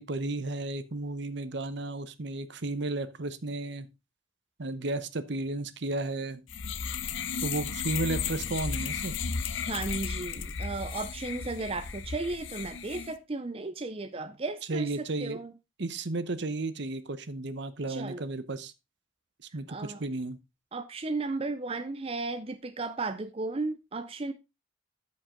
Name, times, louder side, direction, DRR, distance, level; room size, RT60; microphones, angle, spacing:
voice 1, 0.0-3.9 4.6-6.4 7.4-9.2 14.7-15.4 15.8-18.7 19.5-20.4, right 2 dB, 60° right, 0.9 m, -33 dB
sound 1, 6.5-13.1, left 6 dB, 70° left, 0.7 m, -34 dB
voice 2, 9.7-15.5 17.9-18.3 19.7-20.0 20.7-24.3, right 3 dB, 30° right, 0.5 m, -35 dB
13.0 x 5.4 x 3.7 m
head